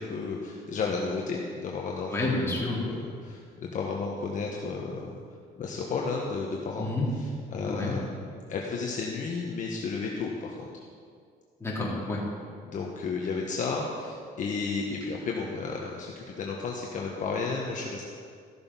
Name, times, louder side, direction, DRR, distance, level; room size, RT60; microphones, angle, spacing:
voice 1, 0.0-2.3 2.8-5.1 5.6-10.7 12.6-18.1, left 4 dB, 50° left, -1 dB, 1.3 m, -33 dB
voice 2, 2.1-2.9 6.8-7.1 7.7-8.0 11.6-12.3, left 2 dB, 15° left, -5 dB, 3.5 m, -29 dB
14.0 x 6.8 x 5.5 m, 2.1 s
cardioid pair, 110°, 17 cm